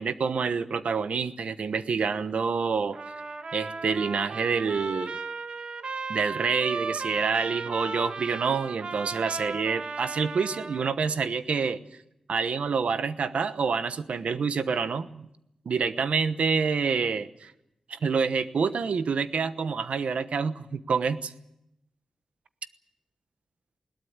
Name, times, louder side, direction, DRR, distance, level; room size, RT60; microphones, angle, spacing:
voice 1, 0.0-3.0 3.5-5.2 6.1-11.8 12.3-15.3 15.6-17.5 17.9-21.3, right 5 dB, 85° right, 11 dB, 1.1 m, -27 dB
Trumpet, 2.9-11.0, right 4 dB, 60° right, 1.4 m, -36 dB
21.0 x 18.5 x 9.5 m, 0.83 s
wide cardioid pair, 125°, 2 cm